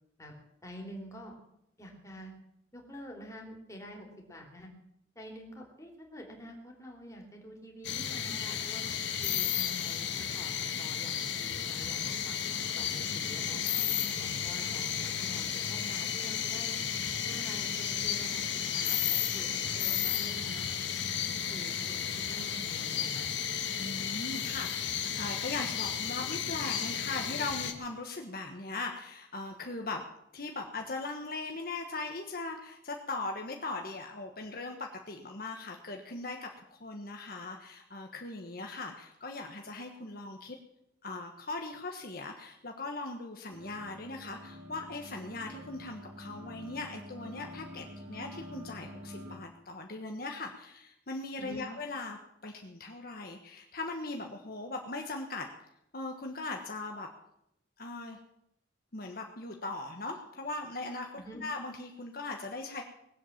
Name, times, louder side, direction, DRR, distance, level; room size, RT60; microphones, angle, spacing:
voice 1, 0.6-1.3 1.8-2.3 2.7-4.7 5.1-8.8 9.2-12.4 12.7-13.6 14.2-16.8 17.2-20.7 21.2-23.3 51.4-51.7 61.1-61.4, equal, 15° left, 1 dB, 3.2 m, -47 dB
sound 1, 7.8-27.7, left 8 dB, 75° left, 1.7 m, -33 dB
voice 2, 23.8-30.0 30.3-40.6 41.0-55.5 55.9-57.1 57.8-58.2 58.9-62.8, left 3 dB, 55° left, 2 dB, 1.4 m, -39 dB
sound 2, 43.5-49.4, left 1 dB, 75° right, 3.9 m, -47 dB
20.5 x 8.3 x 7.3 m, 0.79 s
head